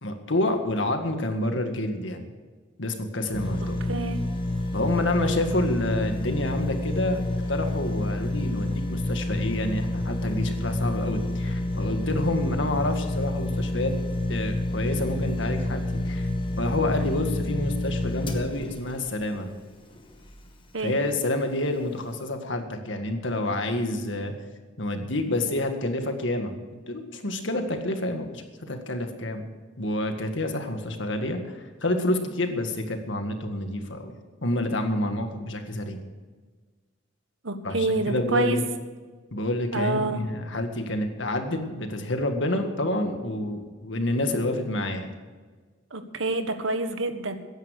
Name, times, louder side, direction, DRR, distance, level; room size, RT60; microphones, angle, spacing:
voice 1, 0.0-2.3 2.8-3.8 4.7-7.2 7.5-13.9 14.3-16.3 16.6-19.5 20.8-24.3 24.8-26.5 26.9-29.4 29.8-34.1 34.4-36.0 37.6-38.6 39.3-45.1, left 1 dB, 70° left, 5 dB, 1.9 m, -28 dB
sound 1, 3.3-20.5 21.0-21.1, left 1 dB, 25° left, 1.6 m, -29 dB
voice 2, 3.9-4.2 20.7-21.0 37.4-38.6 39.7-40.2 45.9-47.3, right 2 dB, 85° right, 8 dB, 1.4 m, -27 dB
15.5 x 10.5 x 6.6 m, 1.4 s
head